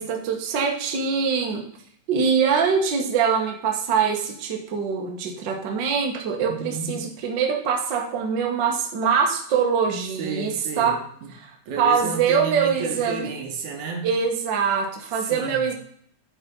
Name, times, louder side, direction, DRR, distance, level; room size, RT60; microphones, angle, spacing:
voice 1, 0.0-1.6 2.1-11.0 11.4-11.5 11.8-13.3 14.0-15.7, right 6 dB, 50° right, 1 dB, 1.5 m, -23 dB
voice 2, 6.4-7.0 10.2-11.3 11.7-14.1 15.1-15.7, right 4 dB, 75° right, 3 dB, 2.6 m, -32 dB
10.5 x 4.2 x 5.2 m, 0.63 s
omnidirectional pair, 3.4 m